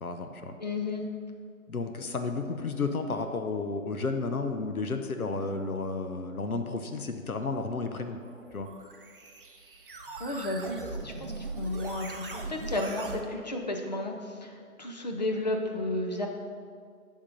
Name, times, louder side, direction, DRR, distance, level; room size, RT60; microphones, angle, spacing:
voice 1, 0.0-0.5 1.7-8.2 8.5-8.7, left 3 dB, 75° left, 6 dB, 0.9 m, -32 dB
voice 2, 0.6-1.1 10.2-14.2 14.4-16.3, left 2 dB, 30° left, 2 dB, 0.7 m, -33 dB
sound 1, 8.2-13.2, right 3 dB, 40° right, 0.7 m, -40 dB
11.0 x 3.7 x 5.4 m, 2.1 s
figure-of-eight pair, 145°, 43 cm